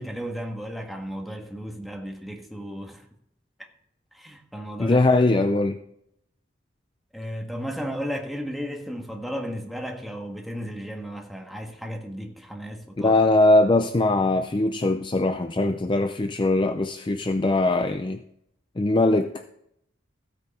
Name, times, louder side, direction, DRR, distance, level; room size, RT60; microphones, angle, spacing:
voice 1, 0.0-3.0 3.6-3.7 4.1-5.0 7.1-13.1, equal, ahead, 1.5 m, -34 dB
voice 2, 4.8-5.8 13.0-18.2 18.8-19.4, left 2 dB, 25° left, 0.5 m, -21 dB
14.5 x 8.8 x 4.3 m
head